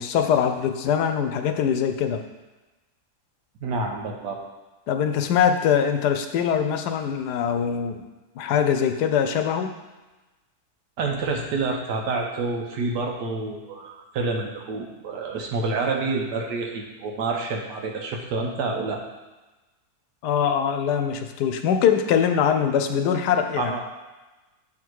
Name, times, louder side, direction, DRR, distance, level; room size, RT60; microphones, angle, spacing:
voice 1, 0.0-2.2 4.9-8.0 8.4-9.7 20.2-23.7, left 8 dB, 80° left, 7 dB, 1.2 m, -22 dB
voice 2, 3.6-4.4 11.0-19.0 23.6-23.8, right 3 dB, 90° right, 2 dB, 1.5 m, -28 dB
7.5 x 3.7 x 4.6 m, 1.1 s
omnidirectional pair, 1.7 m